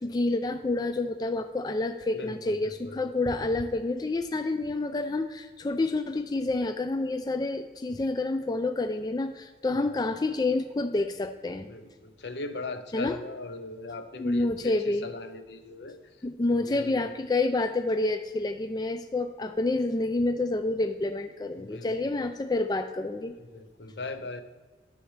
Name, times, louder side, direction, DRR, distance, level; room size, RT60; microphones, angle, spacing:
voice 1, 0.0-11.7 12.9-13.2 14.2-15.1 16.2-23.4, left 2 dB, 20° left, 8 dB, 0.3 m, -28 dB
voice 2, 2.1-3.0 9.7-10.1 11.7-16.0 16.5-17.1 21.5-22.3 23.3-24.4, left 3 dB, 75° left, 9 dB, 0.7 m, -40 dB
10.0 x 6.9 x 3.3 m, 1.4 s
head